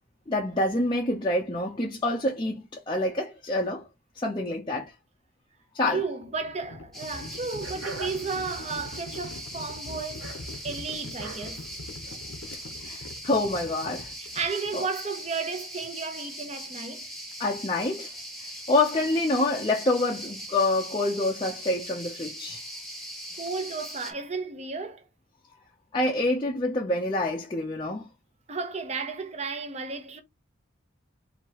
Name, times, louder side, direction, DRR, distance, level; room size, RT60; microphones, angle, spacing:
voice 1, 0.3-3.9 4.1-4.9 5.7-6.0 12.5-14.1 14.7-14.9 17.4-18.2 18.7-22.6 25.9-28.1, left 2 dB, 25° left, 0.6 m, -27 dB
Livestock farm animals working animals, 5.9-14.9, left 2 dB, 75° left, 0.8 m, -43 dB
voice 2, 5.9-10.3 10.6-11.6 14.2-17.1 23.4-25.1 28.5-30.2, right 4 dB, 30° right, 0.7 m, -33 dB
sound 1, 6.9-24.1, equal, ahead, 0.9 m, -40 dB
sound 2, 7.6-12.7, right 3 dB, 75° right, 1.4 m, -44 dB
4.6 x 2.8 x 2.9 m
head